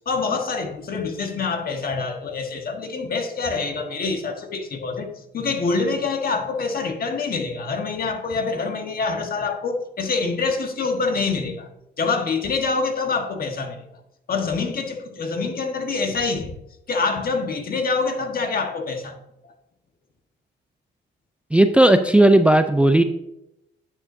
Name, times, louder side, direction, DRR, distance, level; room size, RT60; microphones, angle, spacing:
voice 1, 0.0-5.1 5.3-11.7 12.0-13.8 14.3-16.5 16.9-19.2, left 4 dB, 50° left, 1.4 m, -25 dB
voice 2, 21.5-23.0, right 1 dB, 5° right, 0.4 m, -15 dB
9.7 x 6.8 x 2.7 m
cardioid pair, 90°, 20 cm